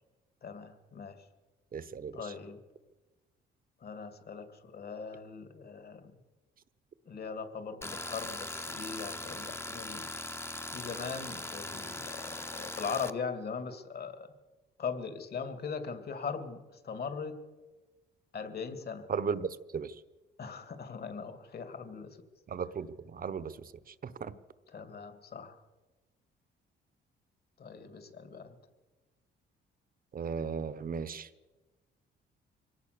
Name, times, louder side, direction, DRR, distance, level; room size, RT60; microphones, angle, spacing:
voice 1, 0.4-1.2 2.1-2.6 3.8-6.1 7.1-10.1 10.7-14.3 14.8-17.4 18.3-19.1 20.4-22.2 24.7-25.6 27.6-28.6, left 5 dB, 50° left, 9 dB, 2.6 m, -40 dB
voice 2, 1.7-2.2 19.1-19.9 22.5-23.7 24.0-24.3 30.1-31.3, right 6 dB, 45° right, 16 dB, 1.1 m, -36 dB
Tools, 7.8-13.1, left 1 dB, 10° left, 1.0 m, -40 dB
23.5 x 17.5 x 6.9 m, 1.2 s
cardioid pair, 90°, 20 cm